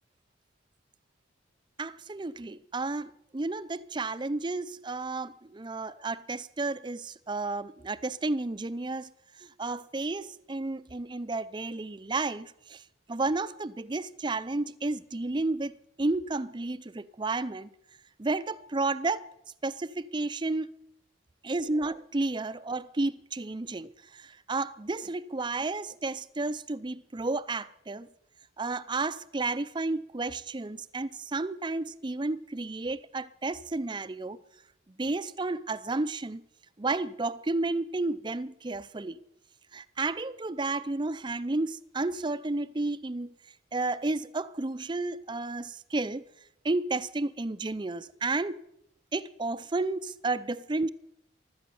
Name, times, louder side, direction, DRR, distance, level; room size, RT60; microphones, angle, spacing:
voice 1, 1.8-9.1 9.4-12.8 13.1-15.7 16.0-17.7 18.2-19.2 19.6-20.7 21.4-28.1 28.6-34.4 35.0-36.4 36.8-39.2 39.7-43.3 43.7-46.2 46.6-48.6 49.1-50.9, right 2 dB, 25° right, 0.5 m, -32 dB
16.0 x 12.0 x 7.1 m
head